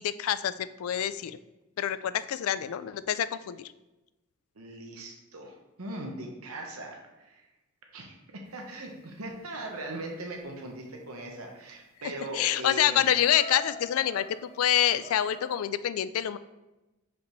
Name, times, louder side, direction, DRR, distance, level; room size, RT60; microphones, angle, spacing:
voice 1, 0.0-1.4 1.8-3.6 12.3-16.4, left 10 dB, 70° left, 14 dB, 0.3 m, -27 dB
voice 2, 4.6-7.4 7.9-8.1 8.5-13.0, right 1 dB, 80° right, 1 dB, 1.0 m, -40 dB
sound 1, 8.6-10.3 11.7-11.8 12.2-12.3 12.6-15.6, left 2 dB, 30° left, 0.8 m, -47 dB
6.6 x 5.1 x 3.0 m, 1.0 s
head